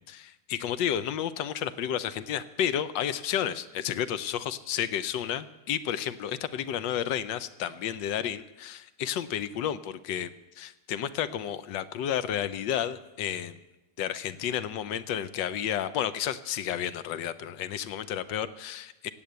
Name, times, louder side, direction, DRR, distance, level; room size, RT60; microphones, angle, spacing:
voice 1, 0.0-13.6 14.0-19.1, left 10 dB, 85° left, 13 dB, 1.4 m, -31 dB
16.0 x 8.8 x 8.0 m, 1.0 s
omnidirectional pair, 1.9 m